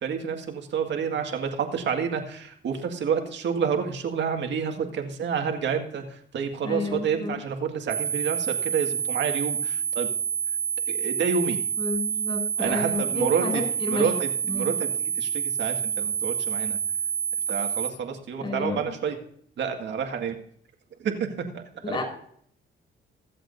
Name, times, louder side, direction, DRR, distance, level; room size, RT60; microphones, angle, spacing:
voice 1, 0.0-10.1 10.9-11.6 12.6-13.6 13.9-16.8 17.5-19.2 19.6-20.4 21.0-22.0, right 6 dB, 65° right, 4 dB, 1.9 m, -29 dB
voice 2, 6.6-7.4 11.8-14.1 14.5-14.7 18.4-18.9 21.8-22.0, left 2 dB, 25° left, 1 dB, 5.6 m, -30 dB
sound 1, 7.9-17.9, right 8 dB, 5° right, 2.4 m, -28 dB
22.5 x 7.8 x 2.7 m, 0.64 s
cardioid pair, 90°, 20 cm